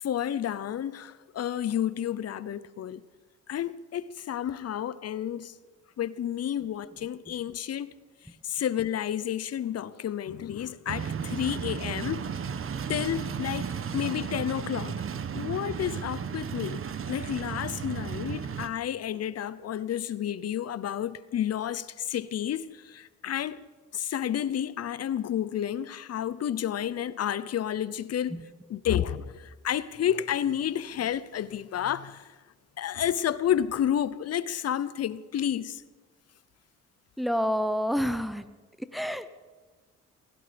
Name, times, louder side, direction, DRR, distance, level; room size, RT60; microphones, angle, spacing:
voice 1, 0.0-3.0 3.5-5.5 6.0-7.9 8.4-12.2 12.9-13.7 13.9-14.9 15.3-16.8 17.1-23.6 23.9-28.4 28.7-32.3 32.8-35.8, left 10 dB, 55° left, 0.8 m, -30 dB
sound 1, 10.9-18.7, right 7 dB, 45° right, 1.1 m, -34 dB
voice 2, 37.2-38.5 38.8-39.4, equal, ahead, 1.0 m, -28 dB
16.5 x 16.0 x 5.2 m
cardioid pair, 90°, 30 cm